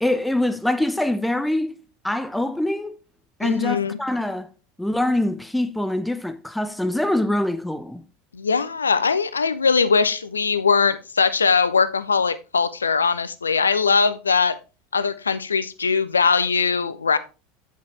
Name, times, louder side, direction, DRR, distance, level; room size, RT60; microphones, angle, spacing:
voice 1, 0.0-3.0 3.4-4.5 4.8-8.0, left 1 dB, 5° left, 0.7 m, -24 dB
voice 2, 3.4-4.0 8.3-14.6 14.9-17.2, left 5 dB, 85° left, 0.6 m, -21 dB
8.1 x 6.5 x 3.3 m
figure-of-eight pair, 80°, 0 cm